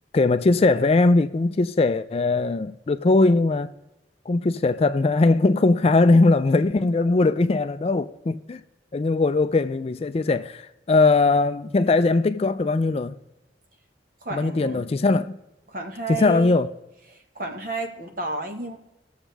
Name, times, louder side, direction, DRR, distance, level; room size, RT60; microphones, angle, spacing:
voice 1, 0.1-3.7 4.3-8.6 8.9-13.2 14.3-15.4 16.1-16.7, left 3 dB, 35° left, 0.4 m, -20 dB
voice 2, 14.2-14.9 15.7-16.6 17.1-18.8, right 3 dB, 50° right, 1.4 m, -32 dB
20.5 x 7.3 x 3.4 m
head